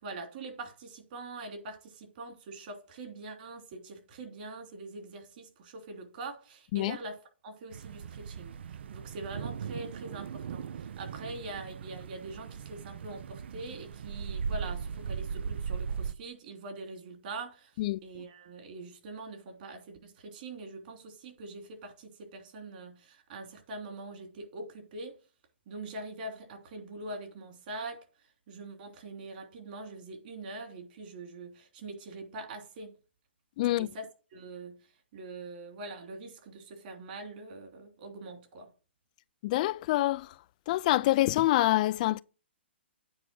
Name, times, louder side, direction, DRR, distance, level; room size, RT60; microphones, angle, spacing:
voice 1, 0.0-17.7 18.0-25.2 25.7-28.0 28.5-33.0 33.8-34.8 35.1-38.7, right 2 dB, 50° right, 3.0 m, -43 dB
sound 1, 7.7-16.1, right 6 dB, 65° right, 0.5 m, -38 dB
voice 2, 33.6-33.9 39.4-40.3 40.7-42.2, left 16 dB, 40° left, 0.3 m, -26 dB
8.9 x 4.7 x 6.2 m
hypercardioid pair, 135°, 6 cm